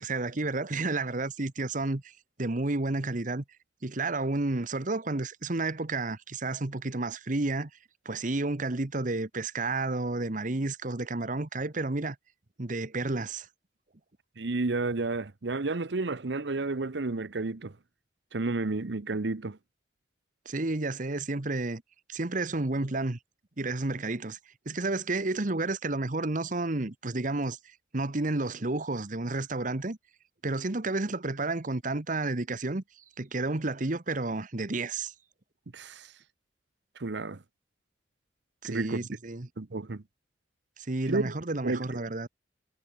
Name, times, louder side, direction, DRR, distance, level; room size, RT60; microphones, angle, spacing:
voice 1, 0.0-2.1 2.4-3.4 3.8-7.7 8.0-12.2 12.6-13.5 20.4-21.8 22.1-23.2 23.6-24.4 24.6-27.6 27.9-30.0 30.4-32.8 33.2-35.1 38.6-39.5 40.8-42.3, right 2 dB, 45° right, 1.2 m, -31 dB
voice 2, 14.4-17.8 18.3-19.6 35.7-36.1 37.0-37.4 38.6-39.1 39.6-40.0 41.1-41.3 41.6-41.8, right 3 dB, 75° right, 0.9 m, -31 dB
head